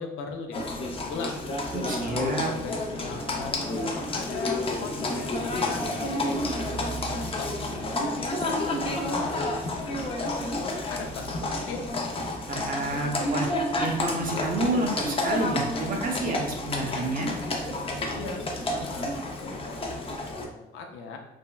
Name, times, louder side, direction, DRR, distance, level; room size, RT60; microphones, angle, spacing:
voice 1, 0.0-1.4 2.1-7.5 8.0-11.9 18.1-21.2, left 4 dB, 90° left, 4 dB, 0.5 m, -39 dB
Livestock farm animals working animals, 0.5-20.4, left 1 dB, 30° left, 0.5 m, -30 dB
voice 2, 1.7-2.5 12.5-13.5 13.8-17.3, right 2 dB, 45° right, 1 dB, 0.7 m, -29 dB
3.3 x 2.1 x 2.2 m, 0.93 s
cardioid pair, 90°, 20 cm